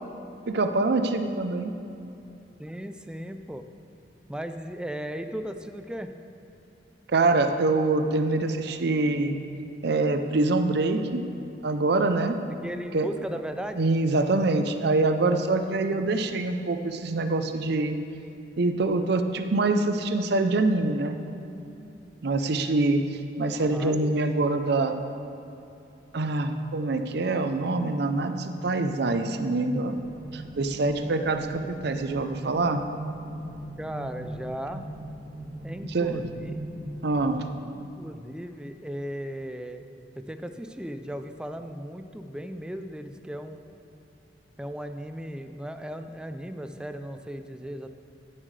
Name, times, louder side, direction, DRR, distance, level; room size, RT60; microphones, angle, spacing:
voice 1, 0.5-1.7 7.1-9.4 9.8-11.2 11.6-12.4 12.9-13.1 13.8-17.9 18.6-21.2 22.2-23.0 23.4-25.0 26.1-30.0 30.3-32.8 35.9-36.2 37.0-37.4, right 2 dB, 65° right, 7 dB, 0.6 m, -25 dB
voice 2, 2.6-3.7 4.3-6.1 12.6-13.9 16.0-16.1 23.5-24.0 33.8-34.9 35.6-36.7 37.7-39.8 40.1-43.6 44.6-47.9, equal, 5° right, 8 dB, 0.4 m, -36 dB
sound 1, 29.9-37.4, right 1 dB, 40° right, 2.2 m, -39 dB
16.0 x 7.4 x 3.3 m, 2.8 s
head